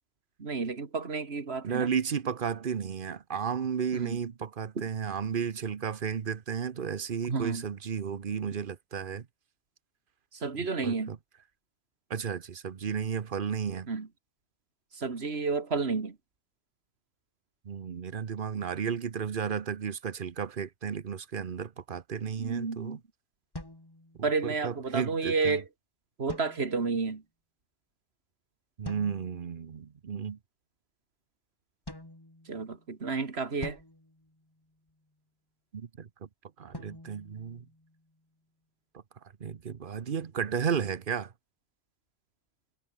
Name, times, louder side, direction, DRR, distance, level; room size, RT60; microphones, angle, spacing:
voice 1, 0.4-1.9 3.9-4.2 7.3-7.6 10.3-11.1 13.9-14.1 14.9-16.2 22.4-23.0 24.2-25.6 26.2-27.2 32.5-33.8, right 4 dB, 85° right, 2.3 m, -31 dB
voice 2, 1.6-9.3 10.8-11.2 12.1-13.9 17.6-23.0 24.2-25.6 28.8-30.4 35.7-36.1 36.6-37.6 39.4-41.3, right 7 dB, 55° right, 1.1 m, -33 dB
sound 1, 23.5-24.6 26.3-27.1 28.8-29.5 31.9-32.9 33.6-35.1 36.7-38.2, left 1 dB, 20° left, 2.8 m, -46 dB
omnidirectional pair, 1.1 m